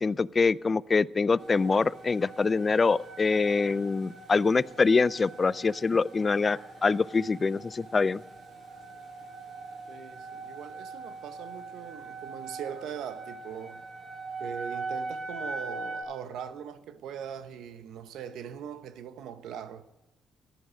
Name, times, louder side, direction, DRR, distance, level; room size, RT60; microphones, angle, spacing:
voice 1, 0.0-8.2, left 4 dB, 30° left, 0.4 m, -25 dB
sound 1, 1.4-16.0, right 3 dB, 50° right, 6.5 m, -41 dB
voice 2, 9.9-13.8 14.4-19.8, right 8 dB, 80° right, 0.9 m, -41 dB
14.0 x 11.0 x 6.4 m
cardioid pair, 90°, 0 cm